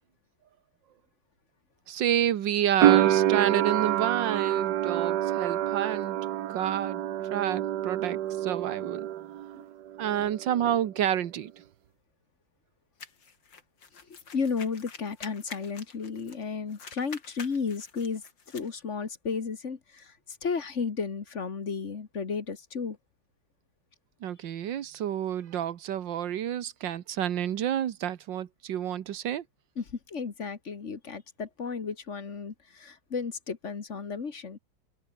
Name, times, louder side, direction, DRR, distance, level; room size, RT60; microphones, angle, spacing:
voice 1, 1.9-6.2 6.5-7.0 7.3-9.1 10.0-11.5 24.2-29.4, right 10 dB, 85° right, 1.8 m, -29 dB
sound 1, 2.8-9.6 9.9-10.8, right 12 dB, 70° right, 1.4 m, -27 dB
sound 2, 13.0-16.4 16.7-18.7, left 5 dB, 90° left, 3.4 m, -47 dB
voice 2, 14.1-23.0 29.8-34.6, left 5 dB, 40° left, 1.8 m, -33 dB
omnidirectional pair, 1.9 m